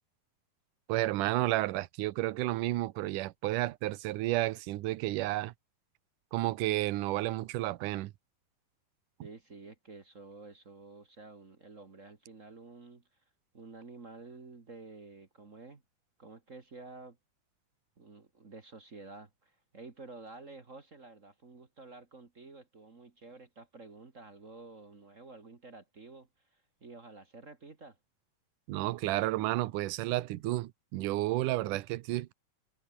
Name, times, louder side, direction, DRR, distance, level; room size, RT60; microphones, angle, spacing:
voice 1, 0.9-5.5 6.3-8.1 28.7-32.3, right 17 dB, 75° right, 2.3 m, -31 dB
voice 2, 9.2-13.0 13.5-15.8 16.2-17.2 18.0-26.3 26.8-28.0, right 3 dB, 35° right, 1.3 m, -50 dB
omnidirectional pair, 4.0 m